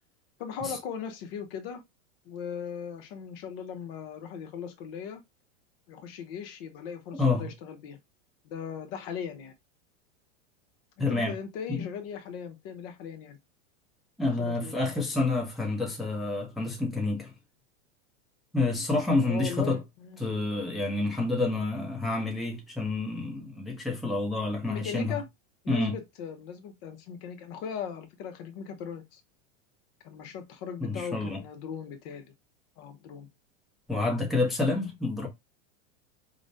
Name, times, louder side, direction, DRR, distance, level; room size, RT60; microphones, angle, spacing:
voice 1, 0.4-1.8 2.3-5.2 5.9-8.0 8.4-9.5 11.0-13.4 14.5-14.8 19.2-20.3 24.7-25.2 25.6-29.2 30.0-32.3 32.8-33.3, left 7 dB, 45° left, 0.8 m, -38 dB
voice 2, 11.0-11.3 11.7-11.9 14.2-17.3 18.5-19.8 20.2-25.2 25.7-25.9 30.8-31.4 33.9-35.3, left 3 dB, ahead, 0.6 m, -28 dB
5.0 x 2.1 x 2.5 m
supercardioid pair, 140°, 39 cm